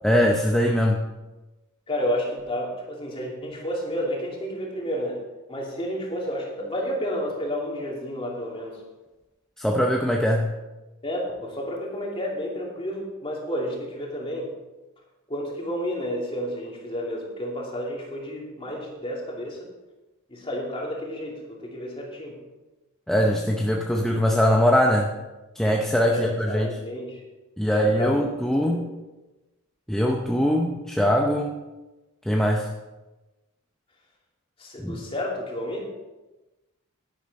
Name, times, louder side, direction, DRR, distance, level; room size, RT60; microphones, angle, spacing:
voice 1, 0.0-1.0 9.6-10.5 23.1-25.1 25.6-26.7 27.6-28.8 29.9-31.5 32.3-32.7 34.8-35.0, equal, ahead, 0 dB, 0.6 m, -22 dB
voice 2, 1.9-5.2 5.5-8.8 11.0-14.5 15.3-19.7 20.3-22.4 26.1-27.2 27.6-28.3 28.6-28.9 34.6-35.9, equal, 25° left, -2 dB, 2.7 m, -31 dB
11.0 x 11.0 x 4.1 m, 1.1 s
head